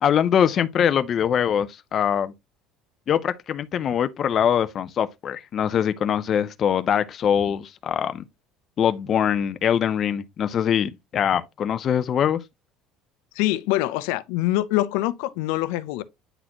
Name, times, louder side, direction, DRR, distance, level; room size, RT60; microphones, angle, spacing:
voice 1, 0.0-2.3 3.1-8.2 8.8-12.4, left 8 dB, 30° left, 0.4 m, -23 dB
voice 2, 13.4-16.0, left 16 dB, 85° left, 0.5 m, -24 dB
8.9 x 4.1 x 2.8 m
cardioid pair, 180°, 0 cm